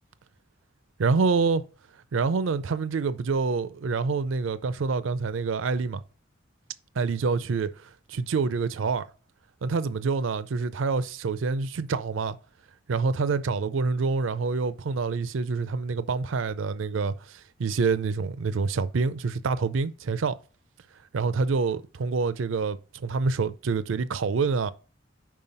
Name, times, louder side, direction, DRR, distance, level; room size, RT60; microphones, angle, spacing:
voice 1, 1.0-1.6 2.1-6.0 7.0-7.7 8.1-9.0 9.6-12.3 12.9-20.4 21.1-22.8 23.0-24.7, right 4 dB, 80° right, 0.5 m, -26 dB
5.6 x 4.7 x 5.4 m
head